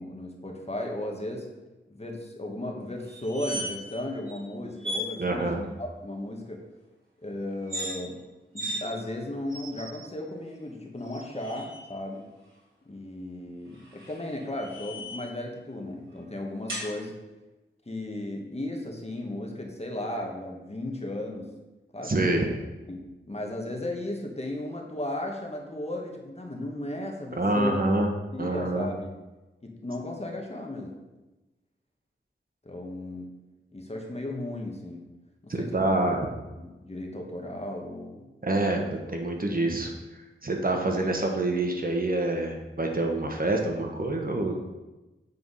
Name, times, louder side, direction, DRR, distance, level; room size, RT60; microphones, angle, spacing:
voice 1, 0.0-1.5 1.9-6.6 7.2-8.2 8.5-12.2 12.8-17.1 17.9-21.5 21.9-22.6 22.9-27.8 28.3-29.1 29.6-30.9 32.6-33.3 33.7-35.0 35.4-36.2 36.6-38.3 40.4-40.5, left 1 dB, 30° left, 1 dB, 1.4 m, -35 dB
sound 1, 3.1-4.0 4.3-4.4 4.8-5.1 7.6-7.9 8.5-8.8 9.5-10.1 11.0-11.8 13.7-15.3 16.7-16.9, equal, 75° right, 2.9 m, -36 dB
voice 2, 5.2-5.6 22.0-22.4 27.4-28.1 28.4-28.9 35.5-36.3 38.4-39.9 40.4-44.5, right 2 dB, 45° right, 2 dB, 1.2 m, -26 dB
8.1 x 4.6 x 5.6 m, 1.1 s
wide cardioid pair, 65°, 20 cm